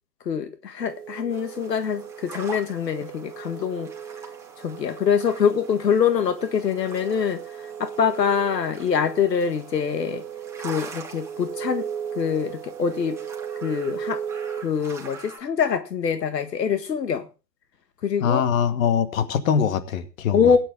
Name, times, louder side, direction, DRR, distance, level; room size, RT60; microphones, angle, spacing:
voice 1, 0.3-3.9 4.6-7.4 7.8-10.2 10.6-11.9 12.2-13.2 13.6-14.2 14.6-17.3 18.0-18.4 20.3-20.6, left 7 dB, 75° left, 1.7 m, -24 dB
sound 1, 0.8-14.6, right 8 dB, 45° right, 1.3 m, -37 dB
sound 2, 1.3-15.4, right 4 dB, 5° right, 2.9 m, -45 dB
voice 2, 18.2-20.6, left 7 dB, 50° left, 2.3 m, -23 dB
17.5 x 10.0 x 3.7 m
hypercardioid pair, 135°, 50 cm